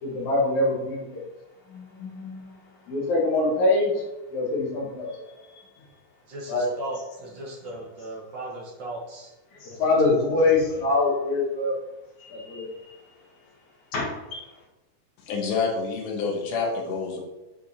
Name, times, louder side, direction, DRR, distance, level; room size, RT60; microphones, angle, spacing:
voice 1, 0.0-1.2 1.7-2.6 2.9-4.0 4.3-5.2 6.5-6.7 9.8-11.8 12.2-12.7 13.9-14.4, left 2 dB, 70° left, -3 dB, 2.8 m, -24 dB
voice 2, 5.2-5.5 6.3-9.3 9.7-10.3, right 1 dB, 60° right, -3 dB, 1.3 m, -38 dB
voice 3, 15.3-17.2, left 4 dB, 85° left, -1 dB, 2.5 m, -27 dB
7.5 x 5.0 x 2.8 m, 1.0 s
omnidirectional pair, 3.6 m